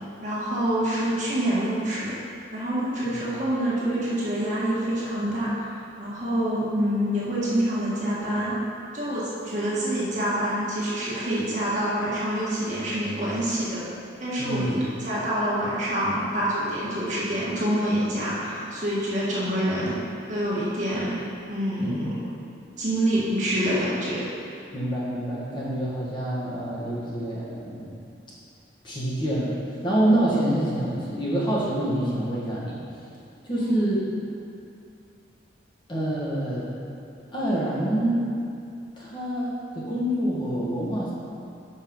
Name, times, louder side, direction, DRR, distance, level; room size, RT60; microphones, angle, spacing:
voice 1, 0.2-2.1 2.5-5.7 6.0-8.6 8.9-13.8 14.2-14.8 15.0-20.0 20.3-21.2 21.5-22.2 22.8-24.2 33.5-33.7, right 1 dB, 40° right, -8 dB, 1.7 m, -26 dB
voice 2, 14.4-14.7 21.8-22.0 24.7-27.9 28.8-32.8 33.4-34.2 35.9-36.7 37.3-38.3 39.0-41.1, right 1 dB, 25° left, -8 dB, 1.5 m, -26 dB
6.6 x 5.6 x 5.3 m, 2.5 s
head